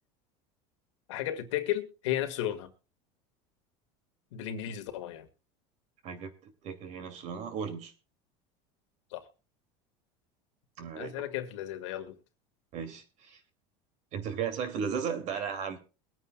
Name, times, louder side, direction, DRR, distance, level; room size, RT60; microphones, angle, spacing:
voice 1, 1.1-2.7 4.3-5.3 9.1-9.3 11.0-12.2, left 12 dB, 90° left, 1.8 m, -34 dB
voice 2, 6.0-7.9 10.8-11.1 12.7-13.4 14.1-15.8, right 7 dB, 50° right, 2.5 m, -35 dB
23.0 x 9.4 x 2.3 m
supercardioid pair, 130°, 15 cm